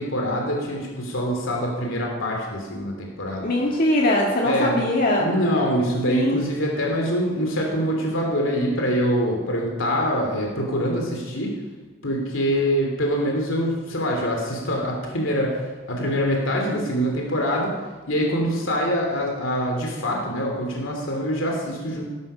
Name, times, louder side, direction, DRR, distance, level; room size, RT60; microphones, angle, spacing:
voice 1, 0.0-3.5 4.4-4.7 5.2-11.5 12.0-17.7 18.1-22.0, equal, 75° left, 0 dB, 2.9 m, -24 dB
voice 2, 3.4-5.3 6.1-6.4, left 1 dB, 45° left, -2 dB, 1.9 m, -21 dB
18.0 x 11.5 x 5.6 m, 1.3 s
head